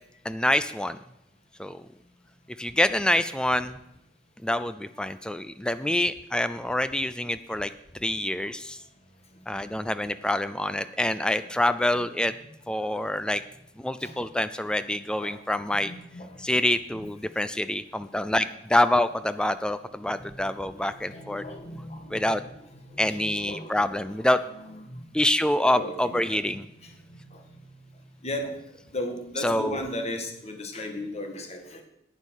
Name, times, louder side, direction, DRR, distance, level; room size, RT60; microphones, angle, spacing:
voice 1, 0.2-1.0 1.6-1.8 2.6-3.7 4.4-7.7 8.0-8.8 9.5-12.3 12.7-13.4 13.8-15.9 16.4-21.4 22.1-22.4 23.0-24.4 25.1-26.6 29.4-29.8, left 1 dB, 5° left, 13 dB, 0.3 m, -26 dB
voice 2, 15.7-16.4 17.0-17.1 18.2-18.4 20.2-20.5 20.8-25.2 25.7-26.4 26.8-27.4 28.2-28.6 28.9-31.8, left 1 dB, 35° left, 4 dB, 1.7 m, -37 dB
9.6 x 9.0 x 6.4 m, 0.82 s
head